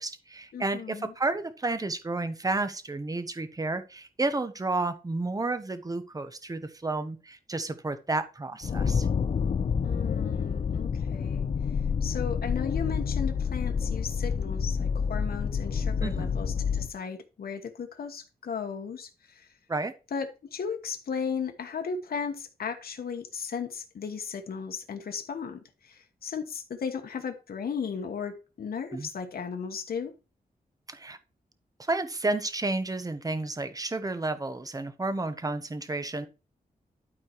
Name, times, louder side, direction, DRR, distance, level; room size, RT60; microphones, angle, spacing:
voice 1, 0.0-9.1 16.0-16.3 19.7-19.9 28.9-29.1 30.9-31.2 31.9-36.3, right 2 dB, 25° right, 1.0 m, -31 dB
voice 2, 0.5-1.1 9.8-11.5 12.0-19.5 20.1-30.1, left 6 dB, 80° left, 1.2 m, -35 dB
sound 1, 8.6-16.9, left 6 dB, 45° left, 0.5 m, -28 dB
12.0 x 4.4 x 4.5 m
wide cardioid pair, 110°, 16 cm